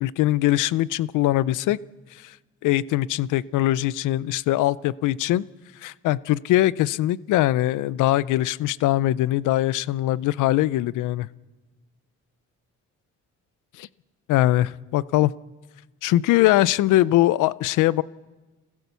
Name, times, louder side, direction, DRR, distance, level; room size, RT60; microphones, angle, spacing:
voice 1, 0.0-1.8 2.2-2.3 2.6-5.4 5.8-11.3 13.8-13.9 14.3-15.3 16.0-18.0, left 15 dB, 85° left, 20 dB, 0.6 m, -21 dB
26.0 x 15.5 x 6.9 m, 1.2 s
cardioid pair, 90°, 30 cm